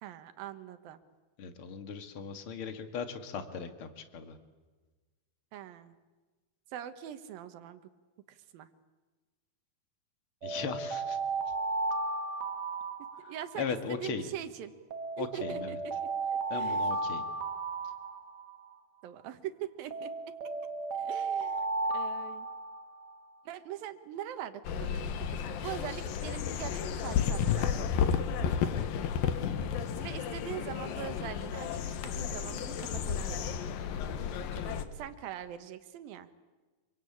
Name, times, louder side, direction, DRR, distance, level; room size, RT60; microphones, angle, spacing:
voice 1, 0.0-1.0 5.5-6.0 6.7-7.8 8.3-8.7 13.3-14.7 15.2-16.9 19.0-20.1 21.0-21.7 21.9-22.5 23.5-27.8 30.0-33.6 34.5-36.3, right 11 dB, 75° right, 11 dB, 3.0 m, -42 dB
voice 2, 1.4-4.4 10.4-11.2 13.6-14.3 15.2-15.8 16.5-17.2 29.5-29.8, left 6 dB, 45° left, 8 dB, 2.3 m, -38 dB
Alarm, 10.4-13.7 14.9-18.7 19.9-23.2, right 3 dB, 55° right, 1.1 m, -34 dB
sound 1, 24.6-34.8, left 7 dB, 75° left, 3.0 m, -32 dB
27.5 x 23.5 x 8.8 m, 1.3 s
omnidirectional pair, 4.3 m